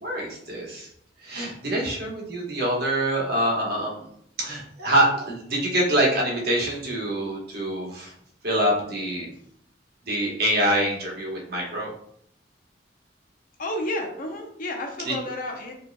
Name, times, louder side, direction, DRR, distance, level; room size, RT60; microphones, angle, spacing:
voice 1, 0.0-0.9 1.2-3.9 4.4-8.1 8.4-9.3 10.0-11.9 15.1-15.2, right 1 dB, 55° right, -2 dB, 1.1 m, -25 dB
voice 2, 13.6-15.7, left 1 dB, 45° left, 2 dB, 0.6 m, -31 dB
4.8 x 2.9 x 2.2 m, 0.68 s
head